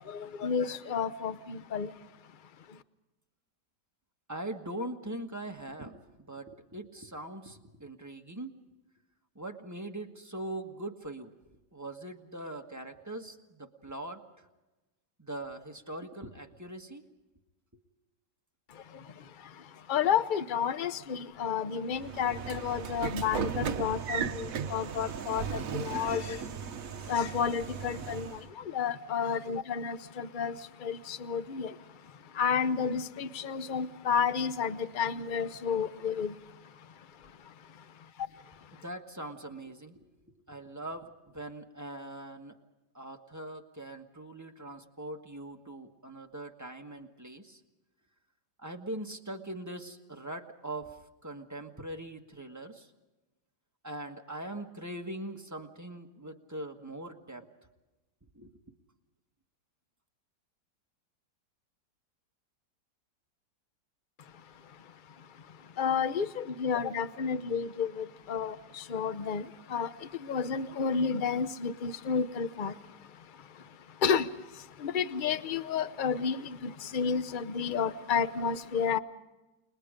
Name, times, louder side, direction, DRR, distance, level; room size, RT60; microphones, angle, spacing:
voice 1, 0.4-1.9 19.9-26.4 27.1-28.3 28.7-30.5 30.8-31.7 32.4-36.3 65.8-68.6 68.9-69.4 69.7-69.9 70.3-72.7 74.0-74.3 74.8-79.0, left 6 dB, 45° left, 13 dB, 0.6 m, -31 dB
voice 2, 4.3-8.5 9.3-11.3 11.7-14.2 15.2-17.0 17.7-17.8 38.7-40.1 40.5-42.5 42.9-47.6 48.6-51.0 51.2-52.9 53.8-57.5 58.3-58.5, right 1 dB, 10° right, 3 dB, 1.3 m, -41 dB
Train / Sliding door, 21.9-28.5, right 7 dB, 55° right, 1.2 m, -36 dB
29.5 x 21.0 x 5.1 m, 1.1 s
omnidirectional pair, 1.9 m